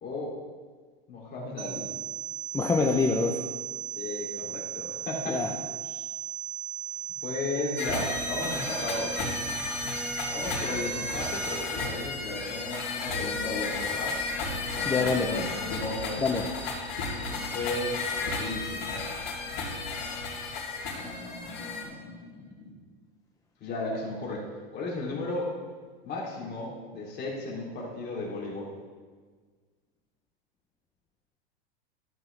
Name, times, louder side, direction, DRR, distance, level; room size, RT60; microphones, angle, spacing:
voice 1, 0.0-0.4 1.1-1.9 4.0-5.4 5.8-6.1 7.2-9.2 10.3-14.2 14.7-16.2 17.3-19.1 20.9-22.7 23.6-24.4 24.7-25.5 26.0-28.7, left 2 dB, 30° left, -4 dB, 3.2 m, -35 dB
sound 1, 1.6-11.6, right 9 dB, 50° right, 1.9 m, -36 dB
voice 2, 2.5-3.4 5.3-5.5 14.9-15.3 16.2-16.5, left 4 dB, 10° left, 1 dB, 0.6 m, -25 dB
sound 2, 7.8-21.8, left 4 dB, 60° left, 3.2 m, -33 dB
14.0 x 8.1 x 3.4 m, 1.5 s
supercardioid pair, 125°, 32 cm